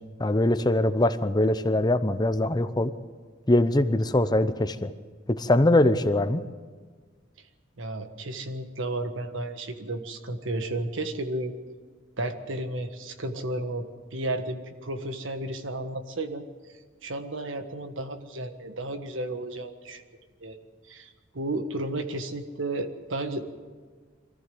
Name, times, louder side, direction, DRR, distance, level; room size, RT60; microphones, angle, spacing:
voice 1, 0.2-2.9 3.5-4.9 5.3-6.4, left 1 dB, 20° left, 12 dB, 0.7 m, -22 dB
voice 2, 7.8-11.5 12.2-13.8 14.1-16.4 17.0-20.0 20.4-20.6 20.9-23.4, right 2 dB, 80° right, 8 dB, 1.5 m, -33 dB
23.5 x 14.5 x 7.8 m, 1.5 s
head